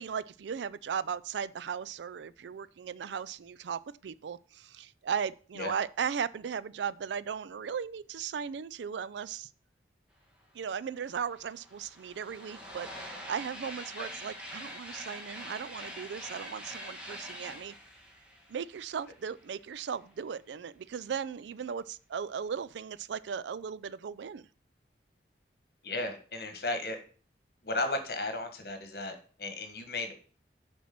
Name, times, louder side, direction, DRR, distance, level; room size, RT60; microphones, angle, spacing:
voice 1, 0.0-9.5 10.5-17.7 18.5-24.5, right 7 dB, 90° right, 0.4 m, -37 dB
sound 1, 10.7-10.8 11.0-19.6, equal, 5° right, 1.5 m, -45 dB
voice 2, 25.8-27.0 27.6-30.1, left 2 dB, 60° left, 1.4 m, -35 dB
7.2 x 4.6 x 5.9 m
head